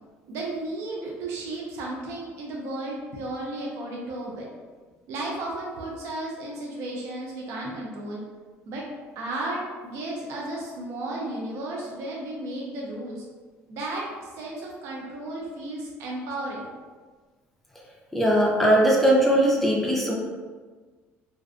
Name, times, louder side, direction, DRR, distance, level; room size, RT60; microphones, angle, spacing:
voice 1, 0.3-4.5 5.1-8.2 8.7-8.8 9.2-13.2 13.7-16.7, right 2 dB, 65° right, -2 dB, 0.5 m, -34 dB
voice 2, 18.1-20.1, right 1 dB, 5° left, -4 dB, 0.5 m, -20 dB
2.5 x 2.1 x 2.4 m, 1.4 s
cardioid pair, 130°, 5 cm